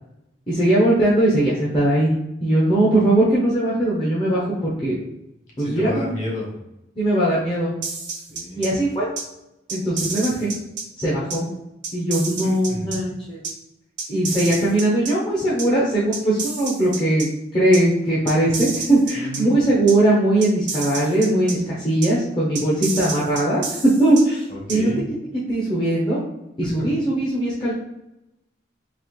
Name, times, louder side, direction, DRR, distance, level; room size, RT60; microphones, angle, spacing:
voice 1, 0.5-2.1 2.4-5.0 5.6-6.2 7.0-7.8 8.6-9.1 9.7-10.5 11.0-11.5 11.9-13.4 14.1-23.6 24.0-24.4 24.7-24.9 25.5-26.2 26.6-27.7, right 1 dB, 25° left, -7 dB, 0.8 m, -20 dB
voice 2, 5.6-6.6 8.1-8.7 12.4-13.0 19.1-19.5 24.5-25.0 26.6-26.7, left 1 dB, 40° left, -3 dB, 1.5 m, -31 dB
sound 1, 7.8-8.7 9.2-9.3 9.7-10.8 11.3-11.4 11.8-13.0 13.4-13.5 14.0-15.1 15.6-15.7 16.1-17.3 17.7-17.8 18.3-19.4 19.9-20.0 20.4-21.5 22.0-22.1 22.5-24.2 24.7-24.8, right 4 dB, 80° right, 1.2 m, -29 dB
4.0 x 3.0 x 3.1 m, 0.89 s
head